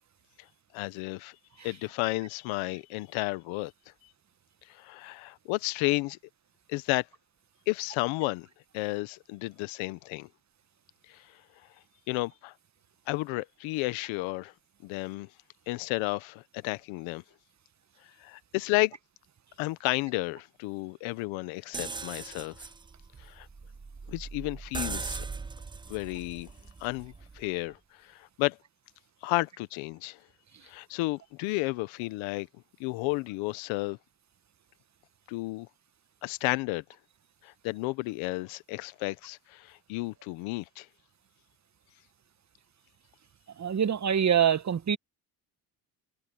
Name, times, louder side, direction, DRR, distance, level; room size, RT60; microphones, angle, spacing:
voice 1, 0.7-1.3 1.6-3.7 4.7-6.2 6.7-7.1 7.7-8.5 8.7-10.3 11.1-11.2 12.1-12.5 13.1-14.5 14.8-15.3 15.7-17.2 18.2-19.0 19.6-22.7 23.2-23.5 24.1-25.2 25.9-26.5 26.8-27.8 28.0-28.6 29.2-30.2 30.6-32.5 32.8-34.0 35.3-35.7 36.2-36.8 37.4-40.9, left 22 dB, 90° left, 1.0 m, -32 dB
sound 1, 21.7-27.5, right 4 dB, 10° right, 0.3 m, -40 dB
voice 2, 43.6-45.0, right 8 dB, 35° right, 1.1 m, -24 dB
supercardioid pair, 65°, 46 cm